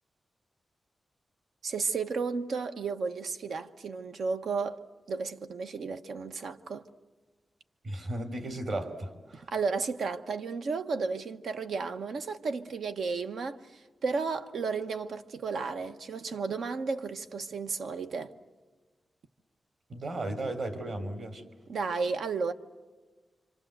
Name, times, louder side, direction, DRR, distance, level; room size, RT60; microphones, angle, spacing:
voice 1, 1.6-4.8 5.1-6.8 9.3-18.3 21.7-22.5, right 4 dB, 90° right, 1.2 m, -33 dB
voice 2, 7.8-9.5 19.9-21.4, right 1 dB, 60° right, 3.3 m, -35 dB
27.5 x 26.0 x 7.9 m
wide cardioid pair, 150°, 0 cm